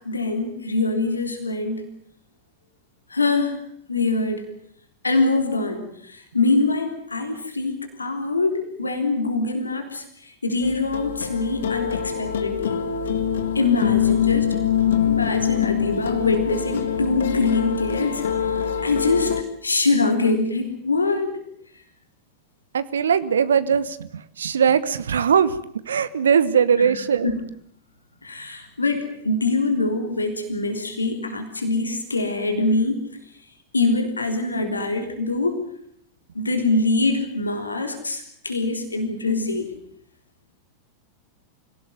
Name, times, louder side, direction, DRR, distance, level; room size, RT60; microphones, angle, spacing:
voice 1, 0.0-1.8 3.1-3.6 3.9-4.4 5.0-7.7 8.0-12.8 13.5-14.5 15.0-19.3 19.6-21.4 26.8-26.9 27.2-27.4 28.2-33.0 33.7-35.6 36.3-39.7, left 3 dB, 80° left, 5 dB, 3.6 m, -24 dB
sound 1, 10.6-19.4, left 8 dB, 60° left, 1.8 m, -24 dB
voice 2, 22.7-25.6 25.9-27.3, right 7 dB, 65° right, 15 dB, 1.1 m, -20 dB
25.5 x 17.5 x 9.4 m, 0.67 s
figure-of-eight pair, 90°, 0 cm